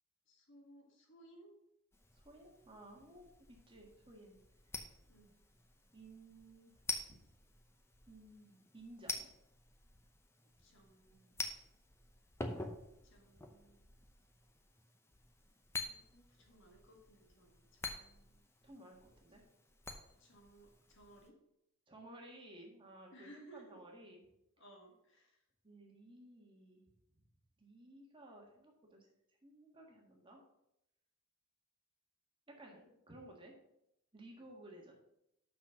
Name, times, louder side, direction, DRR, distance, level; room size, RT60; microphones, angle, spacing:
voice 1, 0.3-1.5 5.1-5.4 10.6-11.3 13.0-13.9 15.8-18.4 20.2-21.4 23.1-23.8 24.6-25.4, right 1 dB, 55° left, 1 dB, 1.8 m, -61 dB
sound 1, 1.9-21.3, left 3 dB, 10° left, 0.7 m, -49 dB
voice 2, 2.1-4.4 5.9-6.7 7.1-7.2 8.1-9.3 18.6-19.4 21.9-24.2 25.6-26.8 27.6-29.1 29.4-30.5 32.5-33.5 34.1-34.9, right 1 dB, 25° right, 0 dB, 1.5 m, -56 dB
6.2 x 6.0 x 5.8 m, 0.81 s
head